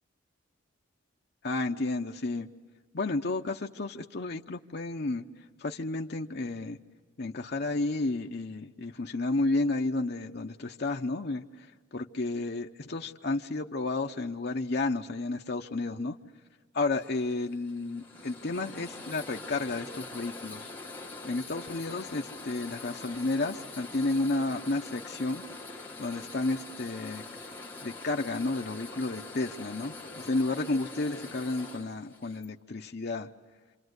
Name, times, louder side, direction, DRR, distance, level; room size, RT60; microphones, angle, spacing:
voice 1, 1.4-2.5 2.9-5.2 5.6-6.8 7.2-11.7 11.9-16.2 16.7-20.7 21.2-25.4 26.0-27.2 27.8-33.3, left 2 dB, 50° left, 3 dB, 0.8 m, -32 dB
sound 1, 17.0-32.5, left 3 dB, 10° left, 1.6 m, -44 dB
27.5 x 26.5 x 8.1 m, 1.5 s
head